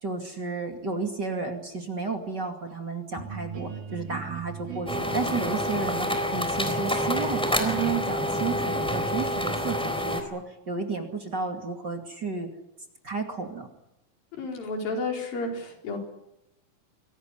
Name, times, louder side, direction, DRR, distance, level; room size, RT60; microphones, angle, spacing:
voice 1, 0.0-12.5 13.0-13.7, right 4 dB, 35° right, 4 dB, 2.7 m, -32 dB
sound 1, 3.1-8.8, right 7 dB, 85° right, 6.0 m, -41 dB
sound 2, 4.9-10.2, equal, ahead, 3.5 m, -28 dB
voice 2, 14.4-16.0, left 2 dB, 85° left, 2 dB, 6.2 m, -31 dB
24.5 x 18.0 x 10.0 m, 0.85 s
omnidirectional pair, 4.0 m